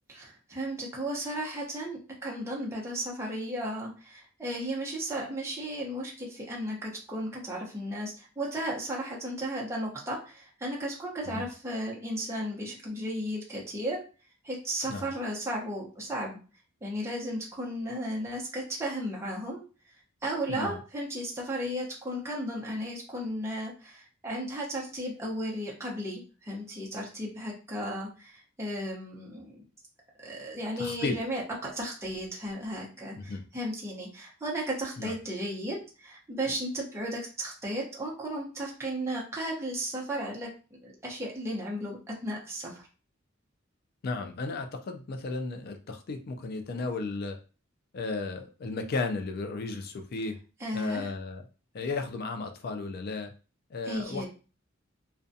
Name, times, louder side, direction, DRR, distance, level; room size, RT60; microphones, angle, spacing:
voice 1, 0.1-14.0 14.4-16.4 16.8-19.6 20.2-29.6 30.2-40.5 40.8-42.9 50.6-51.1 53.9-54.3, right 1 dB, 15° right, -3 dB, 0.7 m, -35 dB
voice 2, 20.5-20.8 30.8-31.2 33.1-33.4 35.0-35.1 44.0-47.4 47.9-50.4 50.7-51.4 51.7-53.3 53.7-54.3, left 3 dB, 50° left, 6 dB, 0.4 m, -34 dB
2.4 x 2.2 x 2.6 m, 0.35 s
head